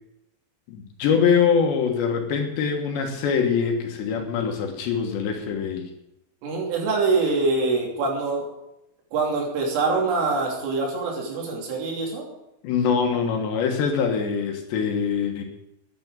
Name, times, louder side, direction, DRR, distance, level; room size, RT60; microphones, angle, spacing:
voice 1, 0.7-5.9 12.6-15.4, left 6 dB, 65° left, 3 dB, 3.3 m, -23 dB
voice 2, 6.4-8.5 9.1-12.3, right 3 dB, 75° right, -1 dB, 5.7 m, -24 dB
10.5 x 9.7 x 7.9 m, 0.87 s
omnidirectional pair, 5.9 m